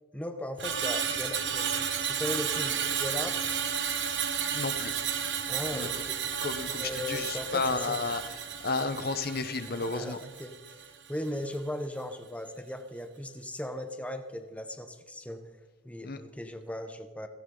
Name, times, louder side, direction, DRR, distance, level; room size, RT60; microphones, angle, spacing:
voice 1, 0.1-3.6 5.5-6.2 6.8-8.0 9.8-15.4 15.8-17.3, left 1 dB, 5° left, 7 dB, 1.0 m, -38 dB
Screech, 0.6-11.0 11.3-11.6, right 7 dB, 60° right, 1.7 m, -32 dB
sound 1, 1.4-8.3, left 2 dB, 75° left, 4.9 m, -53 dB
voice 2, 4.5-4.9 5.7-6.0 6.4-10.2 16.0-16.2, left 3 dB, 50° left, 10 dB, 1.0 m, -32 dB
17.5 x 16.0 x 3.9 m, 1.2 s
head